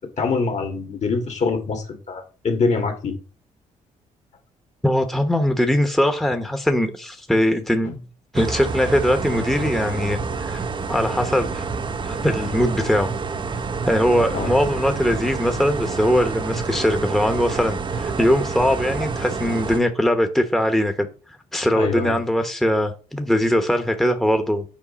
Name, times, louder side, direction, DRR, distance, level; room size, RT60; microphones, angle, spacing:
voice 1, 0.2-3.2 14.3-14.5 21.7-22.2, left 4 dB, 50° left, 1.8 m, -24 dB
voice 2, 4.8-8.0 8.3-10.6 10.9-11.7 12.0-13.1 13.8-21.1 21.5-24.6, equal, ahead, 1.0 m, -21 dB
sound 1, 8.3-19.8, right 4 dB, 35° right, 0.6 m, -28 dB
7.5 x 4.7 x 4.1 m
supercardioid pair, 65°, 15 cm